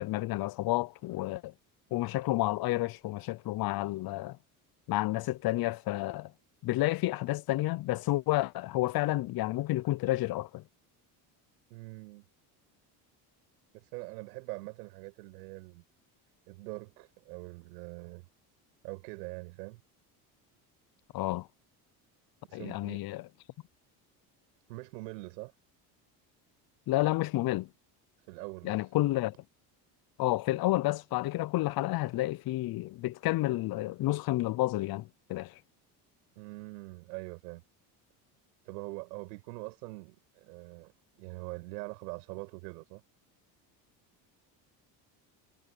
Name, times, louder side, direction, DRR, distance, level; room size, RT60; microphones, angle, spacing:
voice 1, 0.0-1.5 1.9-4.4 4.9-6.3 6.6-10.6 21.1-21.5 22.5-23.3 26.9-27.7 28.6-29.3 30.2-35.5, left 17 dB, 50° left, 0.6 m, -30 dB
voice 2, 11.7-12.2 13.7-15.8 16.5-18.3 18.8-19.8 22.5-23.0 24.7-25.5 28.2-28.9 36.4-37.6 38.7-43.0, right 24 dB, 90° right, 6.9 m, -43 dB
supercardioid pair, 85°, 47 cm